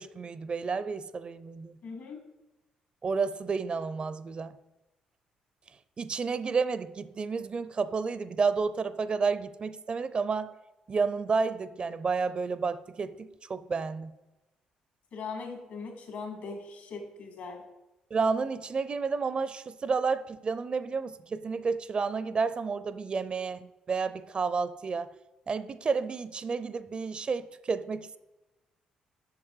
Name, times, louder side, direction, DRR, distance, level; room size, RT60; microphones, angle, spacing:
voice 1, 0.0-1.8 3.0-4.5 6.0-10.5 10.9-14.1 18.1-25.1 25.5-28.2, right 5 dB, 40° right, 15 dB, 0.5 m, -31 dB
voice 2, 1.8-2.2 15.1-17.6, left 4 dB, 70° left, 4 dB, 2.1 m, -40 dB
7.4 x 6.3 x 4.8 m, 1.0 s
cardioid pair, 80°, 3 cm